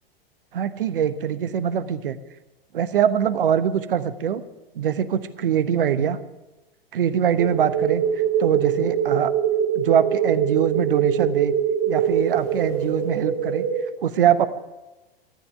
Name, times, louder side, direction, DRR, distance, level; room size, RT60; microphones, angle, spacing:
voice 1, 0.5-2.2 2.7-4.4 4.7-6.2 6.9-8.0 8.4-9.3 9.7-11.5 11.9-13.7 14.0-14.5, right 8 dB, 65° right, 14 dB, 1.1 m, -22 dB
sound 1, 7.4-13.8, right 8 dB, 40° right, 2.1 m, -23 dB
13.5 x 9.9 x 9.9 m, 1.1 s
figure-of-eight pair, 95°, 30 cm